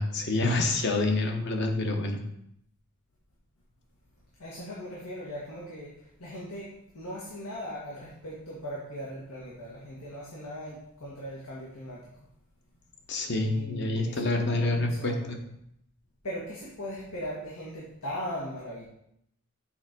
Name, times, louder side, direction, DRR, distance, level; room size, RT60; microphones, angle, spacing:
voice 1, 0.0-2.2 13.1-15.4, left 2 dB, 50° left, 3 dB, 1.0 m, -27 dB
voice 2, 4.4-6.7 6.9-12.1 13.4-15.4 16.2-18.8, equal, 90° left, -5 dB, 1.7 m, -39 dB
7.1 x 4.4 x 5.2 m, 0.76 s
head